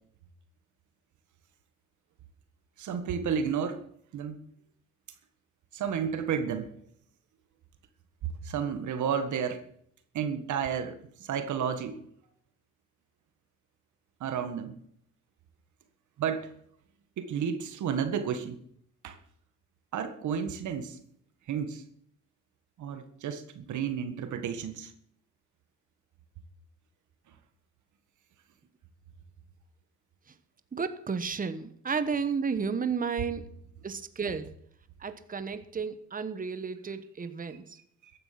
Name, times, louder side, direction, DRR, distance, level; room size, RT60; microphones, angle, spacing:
voice 1, 2.8-3.8 4.1-4.4 5.7-6.7 8.4-9.6 10.1-12.0 14.2-14.8 16.2-16.5 17.2-18.6 19.0-19.2 19.9-21.0 21.5-21.8 22.8-24.9, right 7 dB, 75° right, 1.7 m, -31 dB
voice 2, 30.7-33.5 33.8-34.5 35.0-37.8, right 5 dB, 30° right, 1.2 m, -32 dB
14.5 x 10.5 x 5.9 m
cardioid pair, 90°, 30 cm